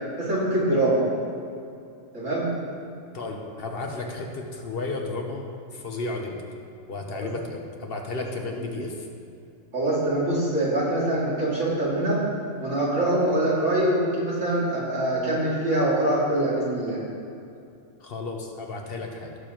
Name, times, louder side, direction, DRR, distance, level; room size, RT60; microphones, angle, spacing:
voice 1, 0.2-1.0 2.1-2.5 7.1-7.3 9.7-12.2 12.6-17.0, right 1 dB, 90° right, -7 dB, 2.9 m, -24 dB
voice 2, 3.1-5.5 5.7-6.4 6.9-9.1 18.0-19.4, left 3 dB, 55° left, 2 dB, 1.1 m, -33 dB
16.0 x 6.8 x 3.0 m, 2.6 s
omnidirectional pair, 1.2 m